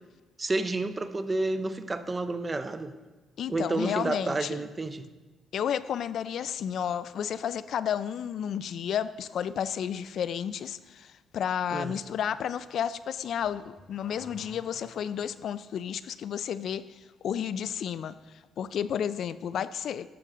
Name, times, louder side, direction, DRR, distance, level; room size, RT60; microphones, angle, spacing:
voice 1, 0.4-2.9 3.5-5.1 11.7-12.0, right 2 dB, 25° right, 11 dB, 0.6 m, -30 dB
voice 2, 3.4-4.6 5.5-18.2 18.6-20.1, left 8 dB, 65° left, 16 dB, 0.3 m, -32 dB
Car / Accelerating revving vroom, 13.3-15.5, equal, ahead, 0.9 m, -53 dB
12.5 x 6.4 x 3.7 m, 1.2 s
cardioid pair, 100°, 0 cm